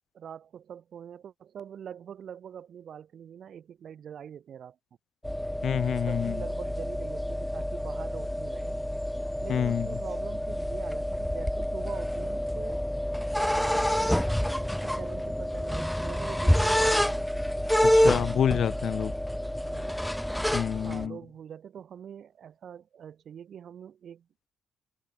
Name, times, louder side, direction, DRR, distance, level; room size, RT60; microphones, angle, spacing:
voice 1, 0.1-4.8 6.1-8.9 9.4-12.9 13.4-18.0 19.7-20.0 20.7-24.5, right 8 dB, 60° right, 5.5 m, -44 dB
sound 1, 5.2-21.1, equal, 5° left, 0.3 m, -28 dB
voice 2, 5.6-6.4 9.5-9.9 17.8-19.1 20.5-21.2, left 8 dB, 60° left, 0.6 m, -28 dB
cardioid pair, 90°, 0 cm